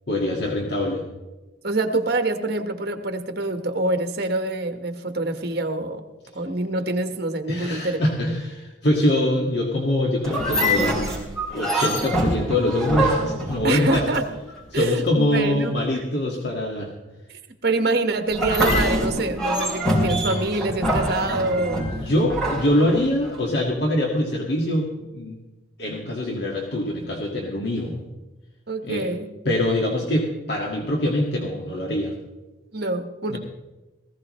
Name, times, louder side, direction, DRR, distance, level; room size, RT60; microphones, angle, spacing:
voice 1, 0.1-1.0 7.5-14.0 14.7-16.9 22.0-25.4 25.8-28.0 28.8-29.1 29.5-32.1 33.3-33.4, left 1 dB, 55° left, -1 dB, 1.9 m, -24 dB
voice 2, 1.6-6.0 6.3-8.0 13.6-14.2 14.7-15.7 17.3-21.8 28.7-29.3 32.7-33.4, right 2 dB, 55° right, 6 dB, 1.5 m, -25 dB
sound 1, 10.2-14.5 18.3-23.4, equal, 5° left, 4.0 m, -25 dB
18.5 x 16.0 x 3.2 m, 1.1 s
head